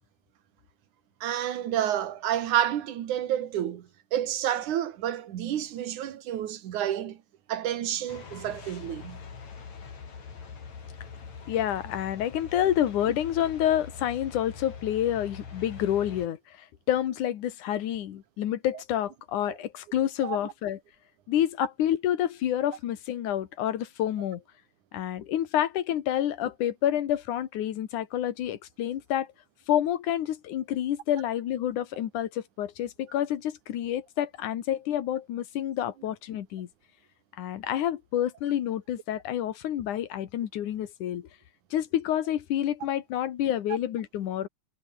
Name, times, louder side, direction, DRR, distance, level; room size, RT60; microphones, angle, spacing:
voice 1, 1.2-7.2 7.5-9.2 19.5-19.6 20.2-20.4, right 11 dB, 80° right, 3.0 m, -29 dB
sound 1, 8.1-16.3, left 5 dB, 65° left, 5.1 m, -43 dB
voice 2, 11.5-16.4 16.9-20.8 21.3-24.4 24.9-29.3 29.7-36.7 37.4-41.3 41.7-44.5, left 11 dB, 90° left, 3.0 m, -28 dB
omnidirectional pair, 3.4 m